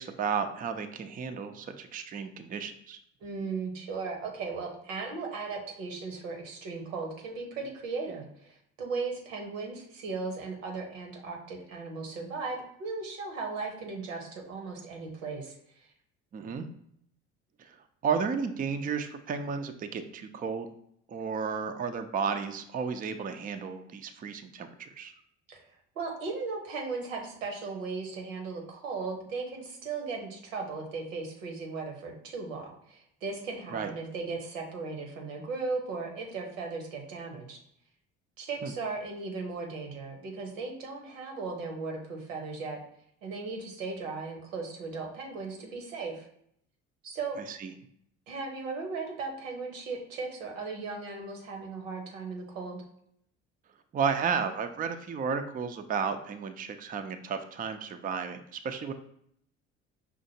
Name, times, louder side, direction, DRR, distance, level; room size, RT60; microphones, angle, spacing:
voice 1, 0.0-3.0 16.3-16.7 17.6-17.8 18.0-20.7 21.1-25.1 33.7-33.9 38.6-38.7 47.5-47.7 53.9-58.9, right 6 dB, 25° right, 7 dB, 0.4 m, -33 dB
voice 2, 3.2-15.6 25.5-25.6 25.9-37.6 38.4-42.8 43.2-46.3 47.0-47.4 48.3-52.8, right 4 dB, 85° right, 1 dB, 0.9 m, -37 dB
5.4 x 2.5 x 2.8 m, 0.69 s
hypercardioid pair, 60°, 38 cm